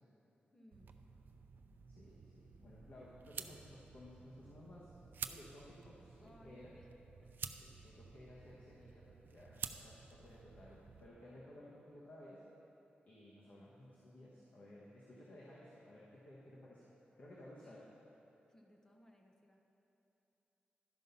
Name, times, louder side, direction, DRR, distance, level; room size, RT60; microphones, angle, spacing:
voice 1, 0.5-1.1 6.2-6.9 7.2-7.5 17.6-18.0 18.5-19.7, equal, 15° left, 2 dB, 0.9 m, -64 dB
sound 1, 0.7-11.1, right 6 dB, 70° right, 0.4 m, -51 dB
voice 2, 1.9-5.0 5.3-6.7 7.5-12.4 13.0-16.8 17.2-17.8, left 1 dB, 55° left, -6 dB, 1.2 m, -57 dB
12.0 x 5.4 x 5.5 m, 3.0 s
wide cardioid pair, 125°, 3 cm